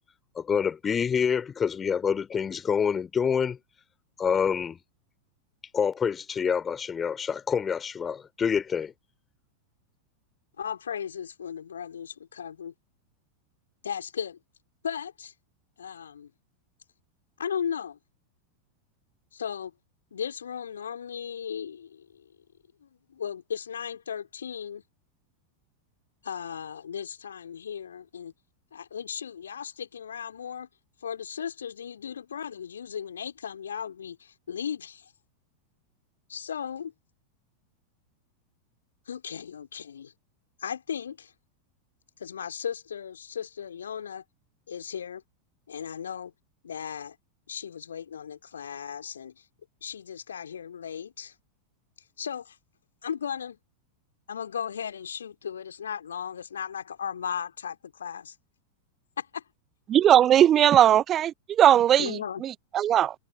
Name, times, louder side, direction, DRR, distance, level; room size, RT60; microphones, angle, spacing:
voice 1, 0.3-3.6 4.2-4.8 5.7-8.9, left 7 dB, 20° left, 3.0 m, -27 dB
voice 2, 10.6-12.7 13.8-14.4 14.8-15.3 15.8-16.3 17.4-18.0 19.3-19.7 20.1-22.2 22.8-24.8 26.2-28.3 28.7-30.7 31.0-35.0 36.3-36.9 39.1-40.1 40.6-41.3 42.2-44.2 44.7-45.2 45.7-46.3 46.6-47.2 47.5-49.3 49.8-51.3 52.2-52.6 53.0-53.6 54.3-58.3 59.2-59.4 62.0-62.4, left 8 dB, 70° left, 2.7 m, -36 dB
voice 3, 59.9-63.1, right 11 dB, 30° right, 0.5 m, -19 dB
figure-of-eight pair, 90°, 0 cm